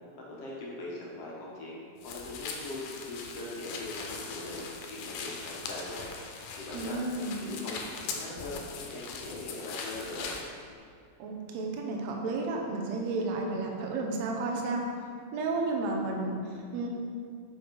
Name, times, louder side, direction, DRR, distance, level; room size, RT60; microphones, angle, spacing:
voice 1, 0.2-7.0 7.4-10.3, left 2 dB, 60° left, -4 dB, 1.8 m, -41 dB
sound 1, 2.0-10.5, left 5 dB, 90° left, 2.5 m, -40 dB
voice 2, 6.7-7.4 11.2-14.8 15.3-16.9, right 3 dB, 70° right, 1 dB, 1.7 m, -32 dB
7.4 x 5.7 x 4.6 m, 2.2 s
omnidirectional pair, 3.9 m